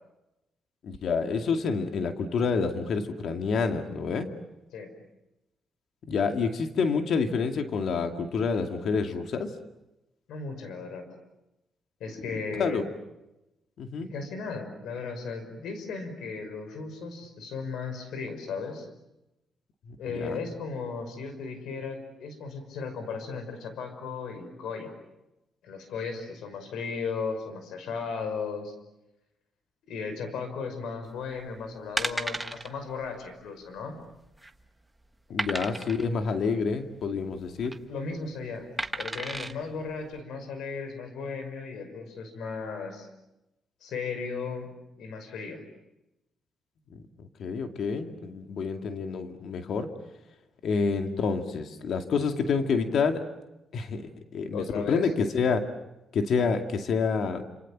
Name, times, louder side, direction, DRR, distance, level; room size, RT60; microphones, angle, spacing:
voice 1, 0.8-4.3 6.1-9.5 12.3-12.8 13.8-14.1 19.9-20.4 35.3-37.7 46.9-49.9 50.6-53.2 53.7-55.6 56.1-57.4, left 5 dB, 60° left, 5 dB, 2.3 m, -28 dB
voice 2, 10.3-11.1 12.0-12.8 14.0-18.9 20.0-24.9 25.6-28.7 29.9-34.0 37.9-38.7 39.0-43.1 43.8-45.6 54.5-55.1, left 5 dB, 85° left, 8 dB, 5.7 m, -36 dB
sound 1, 31.3-31.5 32.0-32.7 33.0-33.2 33.5-33.6 34.1-34.6 35.4-36.1 37.4-37.8 38.8-39.5 40.1-40.2, right 1 dB, 10° right, 1.3 m, -33 dB
29.0 x 28.0 x 7.4 m, 0.94 s
cardioid pair, 125°, 0 cm